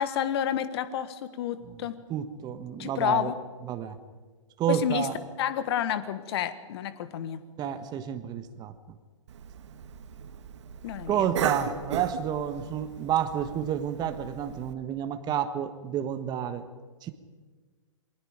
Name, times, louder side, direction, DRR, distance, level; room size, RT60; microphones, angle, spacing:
voice 1, 0.0-2.0 2.8-3.4 4.7-5.1 5.4-7.4 10.8-11.3, left 10 dB, 50° left, 13 dB, 1.5 m, -30 dB
voice 2, 2.1-3.3 3.7-4.0 4.6-5.1 7.6-8.7 11.1-16.6 17.0-17.1, right 9 dB, 25° right, 9 dB, 1.4 m, -30 dB
Cough, 9.3-14.7, right 8 dB, 60° right, 1.6 m, -37 dB
28.0 x 21.0 x 5.1 m, 1.4 s
figure-of-eight pair, 115°, 17 cm